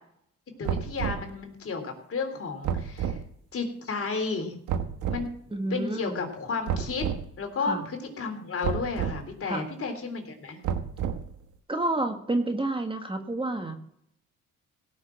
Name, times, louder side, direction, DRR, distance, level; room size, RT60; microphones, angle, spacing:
voice 1, 0.6-3.2 3.5-4.6 5.1-5.3 5.7-7.1 7.4-10.6, left 4 dB, 50° left, 4 dB, 3.6 m, -32 dB
sound 1, 0.6-1.3 2.6-3.2 4.7-5.3 6.7-7.2 8.6-9.2 10.6-11.4, right 8 dB, 90° right, 1.4 m, -30 dB
voice 2, 5.5-6.3 7.6-7.9 9.5-9.7 11.7-13.7, right 2 dB, 15° right, 5 dB, 1.8 m, -29 dB
17.0 x 6.3 x 7.3 m, 0.71 s
cardioid pair, 90°, 30 cm